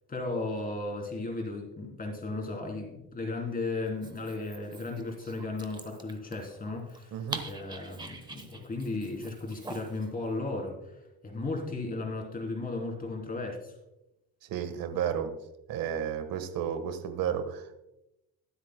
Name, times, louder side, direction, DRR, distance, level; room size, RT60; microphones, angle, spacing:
voice 1, 0.1-7.2 7.4-11.0 11.2-13.7, left 2 dB, 25° left, 0 dB, 3.3 m, -35 dB
Dog, 3.9-10.1, right 3 dB, 15° right, 1.0 m, -45 dB
voice 2, 7.1-7.4 14.4-15.3 15.7-17.7, right 8 dB, 80° right, 9 dB, 1.4 m, -32 dB
23.0 x 8.0 x 2.2 m, 0.91 s
cardioid pair, 140°, 35 cm